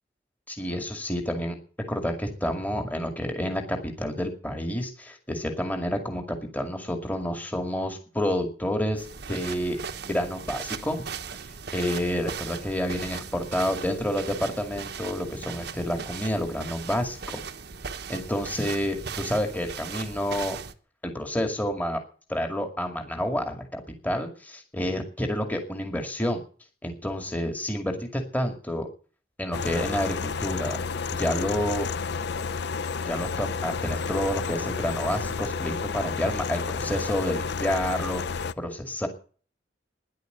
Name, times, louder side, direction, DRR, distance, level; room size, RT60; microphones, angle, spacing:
voice 1, 0.5-1.6 1.9-9.8 10.1-11.0 11.7-17.4 18.1-20.6 21.0-22.0 22.3-26.4 26.8-28.9 29.4-30.8 31.1-31.9 33.1-39.1, equal, 10° left, 4 dB, 2.2 m, -29 dB
sound 1, 9.0-20.7, right 6 dB, 65° right, 1.1 m, -38 dB
sound 2, 29.5-38.5, left 5 dB, 65° left, 0.6 m, -31 dB
13.0 x 10.5 x 7.9 m, 0.41 s
head